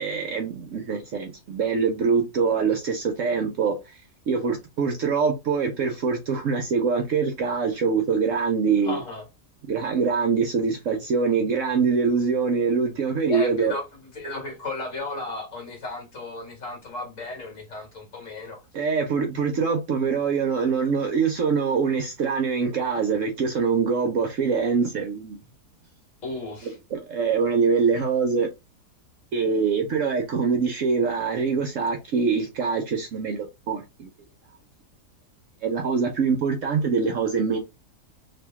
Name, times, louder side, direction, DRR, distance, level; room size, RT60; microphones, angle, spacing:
voice 1, 0.0-3.8 4.3-9.0 9.6-13.7 18.7-25.4 26.9-28.5 29.3-34.1 35.6-37.6, right 5 dB, 60° right, 0.9 m, -24 dB
voice 2, 8.8-9.3 13.3-18.6 26.2-26.8, left 2 dB, 50° left, 1.7 m, -34 dB
2.9 x 2.8 x 3.5 m
omnidirectional pair, 1.7 m